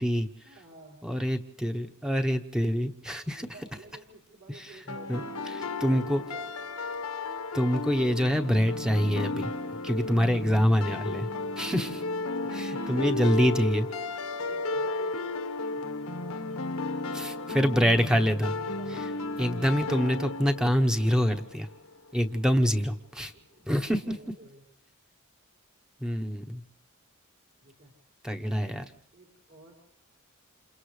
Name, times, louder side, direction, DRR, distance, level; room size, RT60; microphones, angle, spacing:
voice 1, 0.4-1.0 3.3-6.6 12.3-12.9 14.4-16.4 16.6-18.0 18.5-19.1 22.3-22.7 23.3-24.6 27.6-27.9 28.4-29.7, right 2 dB, 60° right, -4 dB, 5.0 m, -52 dB
voice 2, 1.0-3.5 5.1-5.2 5.8-6.2 7.5-9.5 9.8-11.3 11.6-12.0 12.5-13.9 17.1-18.5 19.4-21.7 22.1-23.3 23.7-23.9 26.0-26.6 28.2-28.8, equal, 5° right, 5 dB, 1.0 m, -25 dB
sound 1, 4.9-21.8, left 3 dB, 85° left, 1.3 m, -34 dB
29.0 x 27.5 x 3.3 m, 0.73 s
head